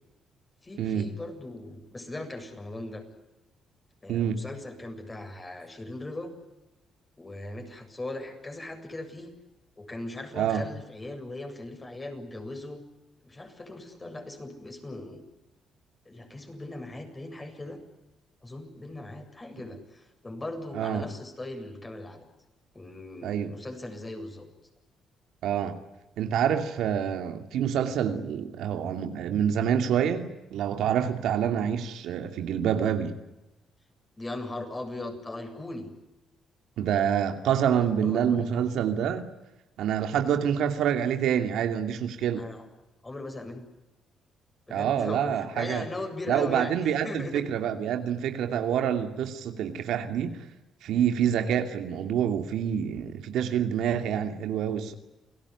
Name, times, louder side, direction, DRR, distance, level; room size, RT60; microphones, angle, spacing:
voice 1, 0.6-3.0 4.0-6.3 7.2-9.3 9.8-12.8 13.2-15.2 16.1-17.8 18.4-22.3 22.7-24.5 34.2-35.9 37.5-38.5 42.4-42.6 43.0-43.7 44.7-47.4, left 2 dB, 20° left, 5 dB, 7.6 m, -39 dB
voice 2, 4.1-4.4 10.4-10.6 20.7-21.0 23.2-23.5 25.4-25.8 26.2-33.2 36.8-39.2 39.8-42.4 44.7-45.9 46.3-50.4 50.8-54.9, right 9 dB, 80° right, 6 dB, 2.6 m, -27 dB
29.0 x 18.5 x 9.8 m, 0.98 s
cardioid pair, 90°, 0 cm